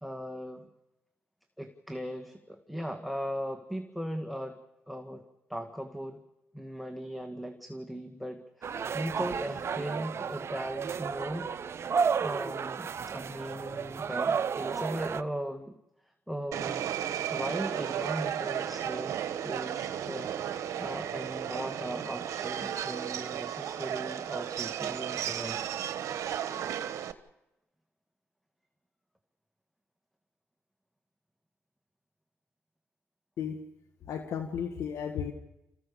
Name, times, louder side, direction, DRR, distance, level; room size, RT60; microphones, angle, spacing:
voice 1, 0.0-0.7 1.6-4.6 4.9-5.2 5.5-6.2 6.5-11.5 12.2-15.7 16.3-16.8 17.3-25.6, equal, ahead, 5 dB, 2.0 m, -38 dB
sound 1, 8.6-15.2, right 6 dB, 55° right, 0.8 m, -32 dB
Subway metro underground, 16.5-27.1, right 10 dB, 80° right, 1.2 m, -34 dB
voice 2, 34.0-35.3, left 7 dB, 80° left, 5 dB, 1.6 m, -34 dB
27.5 x 15.5 x 7.0 m, 0.94 s
supercardioid pair, 55°, 5 cm